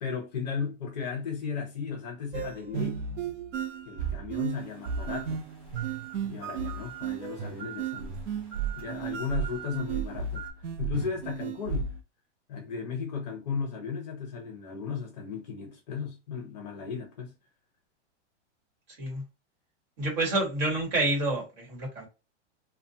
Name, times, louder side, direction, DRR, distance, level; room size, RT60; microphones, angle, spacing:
voice 1, 0.0-3.0 3.9-5.4 6.2-8.2 8.7-10.4 10.8-11.9 12.5-17.3, left 6 dB, 35° left, 0.7 m, -35 dB
sound 1, 2.3-12.0, right 7 dB, 85° right, 0.6 m, -34 dB
sound 2, 4.5-10.5, right 11 dB, 5° left, 1.0 m, -45 dB
voice 2, 20.0-22.1, right 2 dB, 35° right, 1.3 m, -28 dB
2.5 x 2.2 x 2.7 m
supercardioid pair, 175°, 35 cm